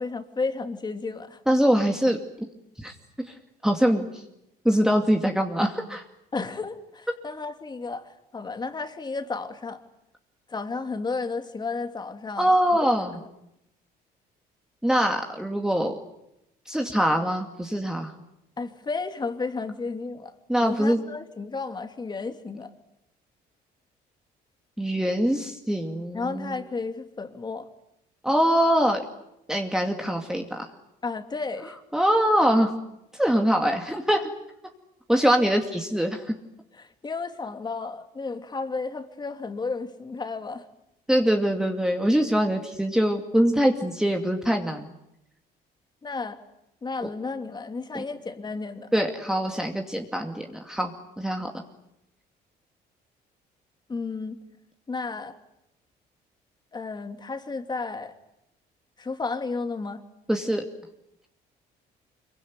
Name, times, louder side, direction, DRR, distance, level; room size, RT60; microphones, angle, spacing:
voice 1, 0.0-1.4 6.3-9.8 10.5-12.6 13.1-13.3 18.6-22.7 26.1-27.7 31.0-31.8 35.2-35.3 36.7-40.7 46.0-46.4 46.8-48.9 53.9-54.4 54.9-55.4 56.7-58.1 59.0-60.0, left 4 dB, 25° left, 7 dB, 2.7 m, -33 dB
voice 2, 1.5-2.2 2.8-3.0 3.3-3.4 3.6-4.2 4.6-6.0 12.4-13.2 14.8-15.9 16.7-18.1 20.5-21.0 24.8-26.6 28.2-29.0 29.5-30.7 31.9-32.7 33.1-34.3 35.1-36.3 41.1-44.9 47.0-47.1 47.9-48.0 48.9-51.5 60.3-60.6, equal, 5° right, 2 dB, 2.4 m, -23 dB
26.0 x 23.5 x 9.7 m, 0.84 s
cardioid pair, 110°, 17 cm